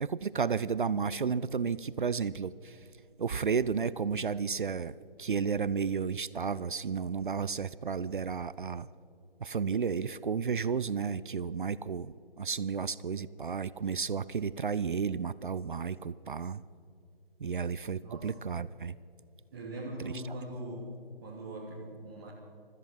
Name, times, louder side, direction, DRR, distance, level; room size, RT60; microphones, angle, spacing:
voice 1, 0.0-2.8 3.2-8.9 9.4-16.6 17.4-18.9 20.1-20.2, right 6 dB, 60° right, 18 dB, 0.5 m, -32 dB
voice 2, 18.0-18.3 19.5-20.9 21.2-22.3, right 1 dB, 20° right, -4 dB, 1.5 m, -41 dB
17.0 x 13.5 x 5.8 m, 2.4 s
figure-of-eight pair, 150°, 29 cm